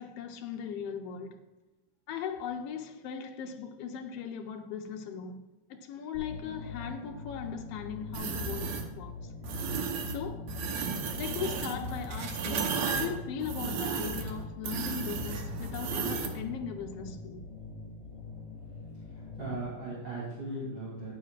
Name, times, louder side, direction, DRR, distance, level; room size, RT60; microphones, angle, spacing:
voice 1, 0.0-1.4 2.1-5.4 5.7-9.1 10.1-10.5 11.2-17.5, left 7 dB, 65° left, 1.8 m, -38 dB
sound 1, 6.1-19.7, left 4 dB, 30° left, 3.0 m, -44 dB
sound 2, 8.1-8.9 9.4-10.2 10.5-16.4, right 5 dB, 70° right, 2.2 m, -34 dB
voice 2, 18.8-21.1, right 2 dB, 40° right, 3.9 m, -38 dB
13.5 x 9.4 x 2.5 m
omnidirectional pair, 3.3 m